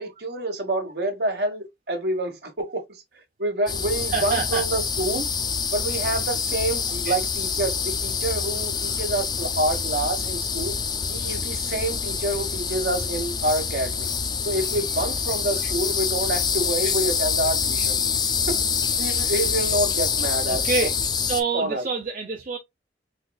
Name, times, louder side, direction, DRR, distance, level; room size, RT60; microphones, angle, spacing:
voice 1, 0.0-3.0 3.4-5.3 5.7-10.7 11.1-14.1 14.4-18.0 18.5-18.6 19.0-20.9 21.5-21.9, right 1 dB, 65° right, 1.2 m, -27 dB
sound 1, 3.7-21.4, left 6 dB, 25° left, 0.4 m, -26 dB
voice 2, 4.1-4.6 7.0-7.1 16.8-16.9 20.5-21.0 21.3-22.6, right 5 dB, 50° right, 0.6 m, -27 dB
4.0 x 3.1 x 2.2 m
head